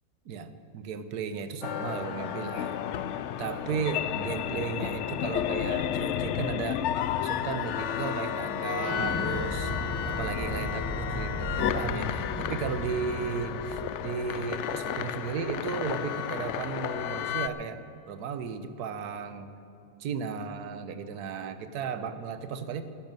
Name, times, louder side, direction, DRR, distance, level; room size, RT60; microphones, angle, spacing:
voice 1, 0.2-2.8 3.4-6.8 7.2-9.7 10.0-17.8 18.1-19.6 20.0-22.8, right 6 dB, 75° right, 11 dB, 1.4 m, -35 dB
sound 1, 1.6-17.5, left 10 dB, 70° left, 0.7 m, -32 dB
Explosion, 8.7-14.3, equal, 15° left, 1.0 m, -36 dB
12.0 x 10.5 x 9.0 m, 2.7 s
omnidirectional pair, 1.7 m